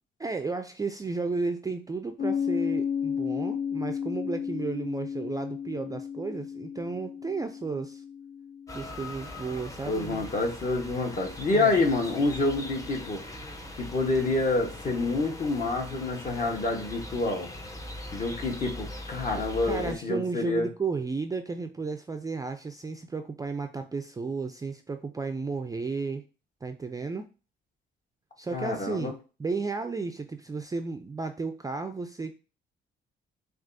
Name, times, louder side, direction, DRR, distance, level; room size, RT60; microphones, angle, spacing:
voice 1, 0.2-8.0 8.7-10.3 11.5-11.7 19.7-26.3 26.6-27.3 28.4-32.3, right 4 dB, 20° right, 7 dB, 0.3 m, -33 dB
Piano, 2.2-9.4, left 7 dB, 85° left, 0.9 m, -33 dB
sound 1, 8.7-20.0, left 1 dB, 15° left, 0.7 m, -41 dB
voice 2, 9.9-13.2 13.8-17.5 18.1-20.7 28.5-29.1, left 3 dB, 40° left, 2 dB, 1.1 m, -27 dB
6.1 x 2.4 x 2.6 m, 0.34 s
cardioid pair, 90°, 20 cm